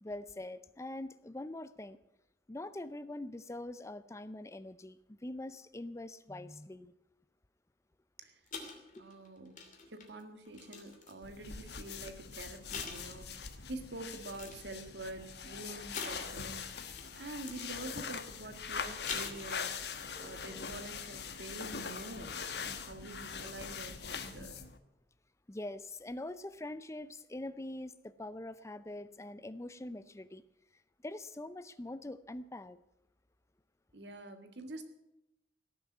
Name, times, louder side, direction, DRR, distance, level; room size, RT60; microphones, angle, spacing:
voice 1, 0.0-2.0 2.5-6.9 9.0-9.1 20.0-20.6 25.5-30.4 31.0-32.8, left 1 dB, 15° left, 0.5 m, -44 dB
Lapices caen sobre mesa, 8.5-11.4 12.1-12.3 12.7-13.6 14.1-14.7 15.9-17.1 17.4-17.8 18.8-19.8 20.2-20.3, left 5 dB, 45° left, 2.8 m, -45 dB
voice 2, 9.0-9.6 9.9-19.9 20.2-24.6 33.9-34.8, right 2 dB, 75° right, 1.9 m, -47 dB
sound 1, 11.2-24.8, left 6 dB, 65° left, 1.2 m, -42 dB
17.5 x 7.1 x 9.4 m
head